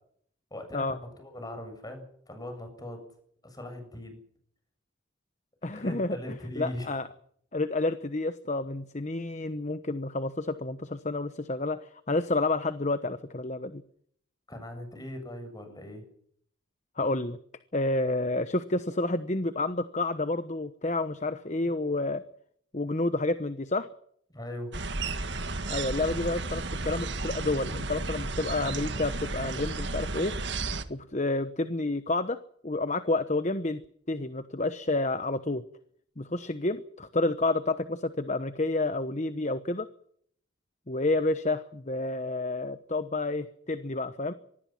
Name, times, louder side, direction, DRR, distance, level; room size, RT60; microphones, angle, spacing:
voice 1, 0.5-3.0 3.4-4.2 5.7-6.9 14.5-16.0 24.3-24.8, left 1 dB, 20° left, 6 dB, 7.6 m, -40 dB
voice 2, 5.6-7.1 7.5-13.8 17.0-17.4 17.7-22.2 22.7-23.9 25.7-30.3 30.9-32.4 32.6-33.8 34.1-35.6 36.2-39.9 40.9-44.3, left 2 dB, 35° left, 11 dB, 1.1 m, -29 dB
sound 1, 24.7-30.8, right 3 dB, 65° right, 1.9 m, -33 dB
24.5 x 20.0 x 6.0 m, 0.65 s
head